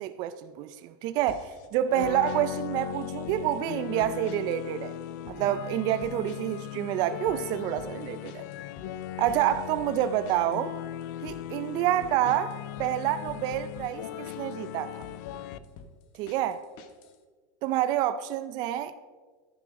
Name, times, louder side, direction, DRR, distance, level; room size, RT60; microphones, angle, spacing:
voice 1, 0.0-4.9 5.3-8.4 9.2-10.7 11.2-12.5 12.8-15.0 16.2-16.6 17.6-18.9, right 12 dB, 45° right, 11 dB, 0.4 m, -28 dB
sound 1, 1.3-1.7 2.0-2.4 3.0-3.6 4.0-4.6 4.9-5.4 6.0-6.6 6.9-10.6 11.0-11.4 12.0-14.6 15.0-17.2, left 5 dB, 50° left, 1.0 m, -49 dB
sound 2, 1.9-15.6, left 13 dB, 70° left, 0.5 m, -38 dB
11.0 x 9.8 x 3.7 m, 1.5 s
supercardioid pair, 145°, 10 cm